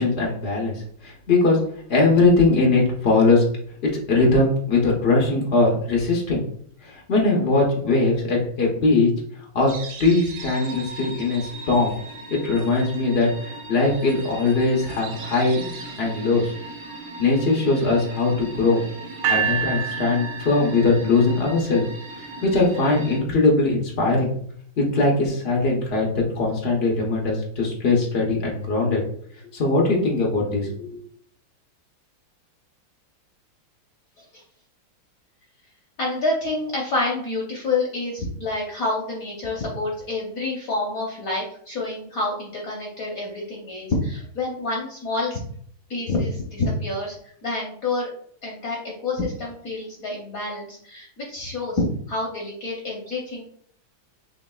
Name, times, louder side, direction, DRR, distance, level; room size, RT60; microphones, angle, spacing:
voice 1, 0.0-1.6 1.9-3.4 3.8-6.4 6.8-9.1 9.5-9.7 10.0-11.9 12.3-15.7 16.0-16.5 17.2-18.8 19.3-21.8 22.1-24.3 24.8-26.1 26.4-29.0 29.5-31.0, left 3 dB, 80° left, -1 dB, 0.5 m, -20 dB
sound 1, 9.7-23.2, right 2 dB, 65° right, 1.1 m, -38 dB
sound 2, 19.2-21.3, right 7 dB, 85° right, 1.6 m, -27 dB
voice 2, 36.0-45.4 45.9-48.1 48.4-53.4, left 2 dB, 60° left, -2 dB, 0.9 m, -28 dB
5.0 x 3.1 x 2.3 m, 0.63 s
omnidirectional pair, 2.2 m